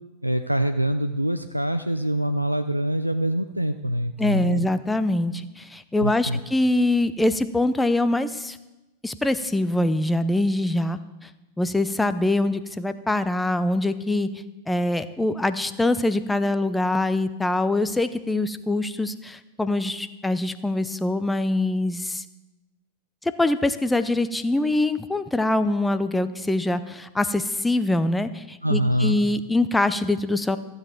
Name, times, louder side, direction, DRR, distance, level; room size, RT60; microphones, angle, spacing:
voice 1, 0.2-4.7 6.0-6.4 28.6-29.2, right 1 dB, 90° right, 8 dB, 0.4 m, -24 dB
voice 2, 4.2-8.6 9.0-11.0 11.6-14.3 14.7-22.2 23.2-30.6, left 2 dB, 5° left, 12 dB, 0.6 m, -24 dB
14.5 x 8.0 x 4.5 m, 1.1 s
figure-of-eight pair, 90°, 0 cm